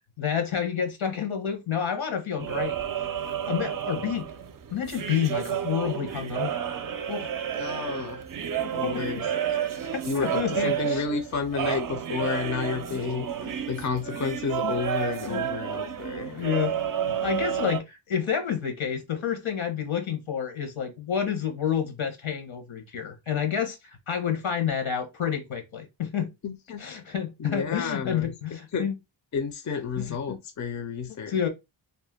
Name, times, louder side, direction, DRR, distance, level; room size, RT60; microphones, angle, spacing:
voice 1, 0.2-4.3 4.7-6.6 7.1-7.3 8.8-9.0 9.8-11.0 12.9-13.0 13.4-13.7 14.6-14.7 15.3-15.4 16.1-16.7 17.0-26.3 26.8-28.9 30.0-30.4 31.3-31.5, left 8 dB, 75° left, 1.1 m, -29 dB
sound 1, 2.4-17.8, right 9 dB, 45° right, 0.5 m, -31 dB
voice 2, 7.6-8.2 8.7-9.3 9.8-16.3 26.4-26.8 27.4-28.9 29.3-31.3, left 5 dB, 35° left, 0.6 m, -31 dB
2.7 x 2.1 x 3.4 m
cardioid pair, 65°, 49 cm